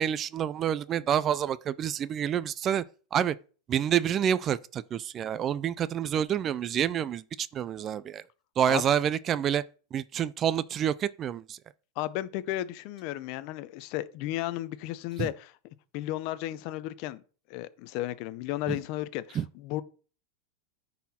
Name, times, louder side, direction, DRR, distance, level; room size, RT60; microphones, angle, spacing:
voice 1, 0.0-2.8 3.1-3.4 3.7-8.2 8.6-9.6 9.9-11.6 15.2-15.3 19.4-19.5, right 9 dB, 25° right, 0.3 m, -28 dB
voice 2, 12.0-15.5 15.9-17.2 17.5-19.8, left 15 dB, 50° left, 0.6 m, -34 dB
10.0 x 4.2 x 4.2 m
supercardioid pair, 150°, 0 cm